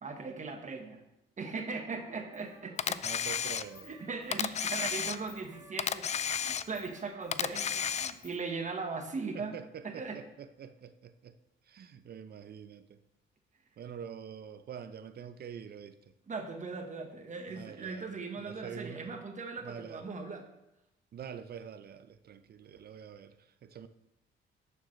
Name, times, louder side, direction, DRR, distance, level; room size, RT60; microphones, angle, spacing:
voice 1, 0.0-1.0 1.4-3.0 3.8-6.1 6.4-9.5 9.8-10.2 16.3-20.4, right 4 dB, 40° right, 1.3 m, -39 dB
Trumpet, 1.8-8.5, right 2 dB, 20° right, 1.5 m, -59 dB
Camera, 2.8-3.9 4.3-5.5 5.8-6.9 7.3-8.4, left 8 dB, 35° left, 0.4 m, -33 dB
voice 2, 3.0-3.9 9.3-11.4 11.7-13.0 13.8-16.0 17.5-19.1 19.6-20.1 21.1-23.9, right 8 dB, 55° right, 0.6 m, -46 dB
11.5 x 6.6 x 3.2 m
cardioid pair, 90°, 20 cm